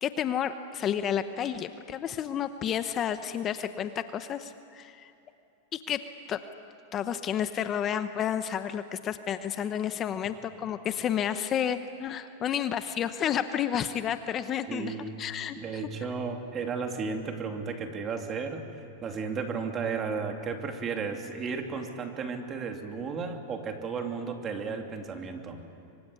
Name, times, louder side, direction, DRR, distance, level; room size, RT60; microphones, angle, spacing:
voice 1, 0.0-5.1 5.7-6.0 6.3-6.4 6.9-15.8, left 9 dB, 30° left, 10 dB, 0.9 m, -31 dB
voice 2, 14.7-15.2 15.6-18.7 19.0-25.6, right 5 dB, 25° right, 4 dB, 2.8 m, -34 dB
25.0 x 24.5 x 9.8 m, 2.7 s
supercardioid pair, 140°, 0 cm